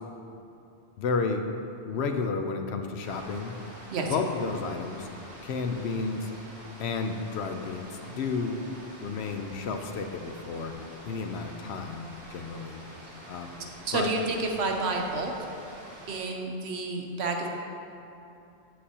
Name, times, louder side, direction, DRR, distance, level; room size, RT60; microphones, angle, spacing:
voice 1, 1.0-1.5 1.9-3.6 4.1-5.1 5.4-6.3 6.8-8.6 9.0-10.7 11.1-12.8 13.3-13.5 13.9-14.1, left 4 dB, 75° left, 6 dB, 0.9 m, -31 dB
sound 1, 3.0-16.2, right 1 dB, 60° right, 1.4 m, -47 dB
voice 2, 13.8-15.3 16.1-17.5, right 3 dB, 75° right, 2 dB, 1.0 m, -29 dB
8.3 x 7.6 x 2.8 m, 2.8 s
omnidirectional pair, 1.1 m